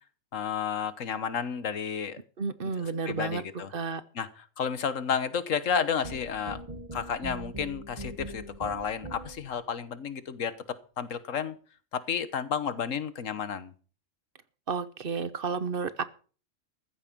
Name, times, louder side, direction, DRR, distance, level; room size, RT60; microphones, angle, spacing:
voice 1, 0.3-2.2 2.6-2.7 3.0-3.7 4.1-6.6 6.9-10.5 11.0-11.5 11.9-13.7, left 7 dB, 80° left, 1.5 m, -31 dB
voice 2, 2.4-3.4 3.7-4.0 14.7-16.0, right 5 dB, 50° right, 1.1 m, -31 dB
sound 1, 6.0-9.6, right 1 dB, 30° right, 1.7 m, -41 dB
14.5 x 8.9 x 6.1 m
omnidirectional pair, 1.3 m